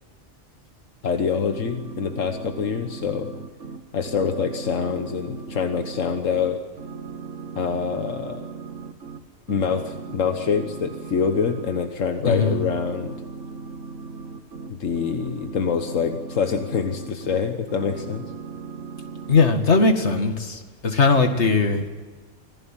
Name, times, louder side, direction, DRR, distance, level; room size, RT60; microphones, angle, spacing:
voice 1, 1.0-3.3 3.9-6.6 7.5-8.5 9.5-13.1 14.7-18.2, left 6 dB, 85° left, 7 dB, 1.6 m, -25 dB
sound 1, 1.4-6.5 6.8-9.2 9.5-11.9 12.2-17.4 17.7-19.4, right 5 dB, 75° right, 1.8 m, -37 dB
voice 2, 12.3-12.6 19.3-21.9, left 4 dB, 60° left, 6 dB, 2.3 m, -19 dB
26.0 x 16.0 x 9.1 m, 1.4 s
omnidirectional pair, 1.3 m